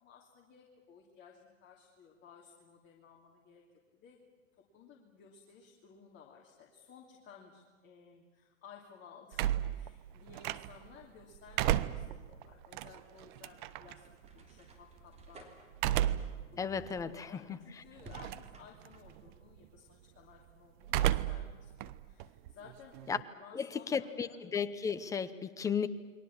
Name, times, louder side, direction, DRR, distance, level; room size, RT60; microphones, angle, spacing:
voice 1, 0.0-3.6 3.9-4.3 4.7-14.0 14.3-15.7 16.0-16.1 16.5-22.9 23.4-24.4, left 6 dB, 25° left, -1 dB, 2.9 m, -57 dB
sound 1, 9.3-11.0 11.4-13.9 15.7-16.4 16.9-17.0 18.1-18.6 18.9-19.3 20.8-21.5 21.8-23.2, right 13 dB, 35° right, 0.9 m, -33 dB
sound 2, 12.7-19.1, right 2 dB, 15° right, 3.3 m, -56 dB
voice 2, 16.6-17.6 23.1-23.2 23.5-25.9, left 6 dB, 10° left, 11 dB, 0.8 m, -34 dB
29.0 x 22.5 x 7.3 m, 1.4 s
hypercardioid pair, 130°, 40 cm